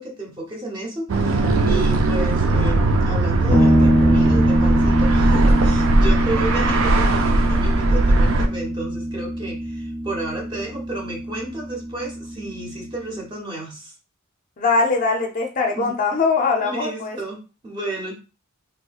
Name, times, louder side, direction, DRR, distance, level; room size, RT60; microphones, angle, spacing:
voice 1, 0.0-13.9 15.8-15.9 16.6-18.1, right 2 dB, 20° right, 0 dB, 1.0 m, -32 dB
sound 1, 1.1-8.5, right 2 dB, 65° right, 0.4 m, -19 dB
sound 2, 3.5-13.0, equal, 10° left, 1.0 m, -22 dB
voice 2, 14.6-17.2, left 4 dB, 40° left, 2 dB, 0.5 m, -21 dB
3.4 x 3.0 x 2.3 m, 0.32 s
head